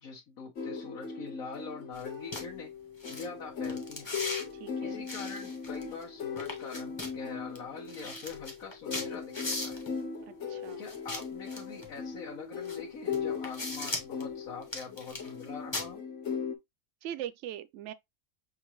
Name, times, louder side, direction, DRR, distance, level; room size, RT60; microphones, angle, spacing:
voice 1, 0.0-2.7 3.1-4.1 4.8-9.8 10.8-16.0, left 5 dB, 80° left, 1.5 m, -44 dB
sound 1, 0.6-16.6, left 6 dB, 60° left, 1.2 m, -39 dB
sound 2, 1.9-2.0 2.3-2.4 3.0-3.3 3.6-4.4 5.1-6.0 6.4-7.1 7.6-7.7 7.9-9.9 10.9-11.9 12.6-12.8 13.1-14.2 14.6-15.4 15.7-15.9, left 2 dB, 20° left, 1.0 m, -38 dB
voice 2, 4.5-5.0 10.3-10.8 17.0-17.9, right 11 dB, 65° right, 0.8 m, -41 dB
6.4 x 2.5 x 3.0 m
omnidirectional pair, 1.5 m